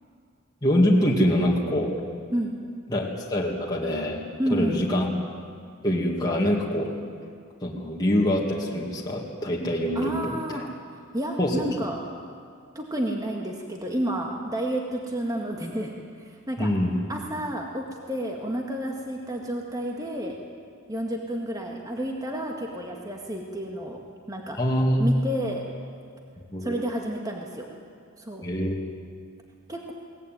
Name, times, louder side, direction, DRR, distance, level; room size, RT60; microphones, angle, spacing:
voice 1, 0.6-2.0 2.9-4.2 4.5-5.1 5.8-6.9 7.6-10.6 11.4-11.7 16.6-17.0 24.6-25.1 26.5-26.8 28.4-28.7, equal, 20° left, -4 dB, 2.3 m, -24 dB
voice 2, 4.4-4.8 10.0-10.6 11.1-12.0 12.8-15.9 16.2-16.7 17.1-20.4 20.9-24.0 24.3-24.6 25.0-25.6 26.6-27.7 28.2-28.5 29.7-29.9, right 1 dB, 15° right, 0 dB, 1.9 m, -30 dB
22.5 x 19.0 x 9.4 m, 2.3 s
head